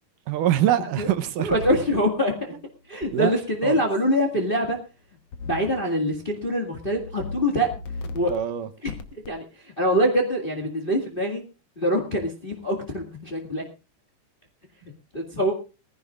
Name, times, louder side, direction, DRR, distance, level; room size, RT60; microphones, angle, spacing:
voice 1, 0.3-1.6 3.1-3.3 3.6-3.8 8.3-8.7, right 11 dB, 75° right, 10 dB, 2.3 m, -24 dB
voice 2, 1.4-2.5 2.9-4.8 5.4-7.7 8.0-8.3 8.8-8.9 9.3-11.4 11.8-13.6 15.1-15.5, equal, 20° left, 3 dB, 1.5 m, -24 dB
sound 1, 1.5-2.0 3.0-3.1 5.3-5.8 6.2-6.5 6.9-7.4 7.7-8.4 8.9-9.3, left 3 dB, 60° left, 2.0 m, -36 dB
21.0 x 15.0 x 2.4 m, 0.30 s
omnidirectional pair, 3.9 m